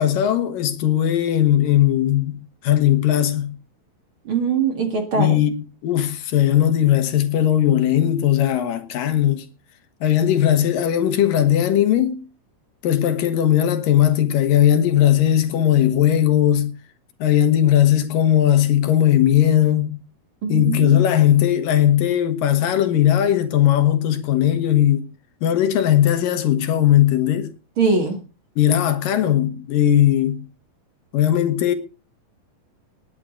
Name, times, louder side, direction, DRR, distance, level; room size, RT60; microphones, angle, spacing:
voice 1, 0.0-3.5 5.1-5.5 5.8-9.5 10.0-12.2 12.8-16.7 17.2-20.0 20.5-25.1 25.4-27.5 28.6-30.4 31.1-31.7, left 11 dB, 75° left, 2.9 m, -18 dB
voice 2, 4.3-5.4 20.4-21.0 27.8-28.2, right 5 dB, 40° right, 2.4 m, -21 dB
19.5 x 8.7 x 3.9 m
omnidirectional pair, 4.1 m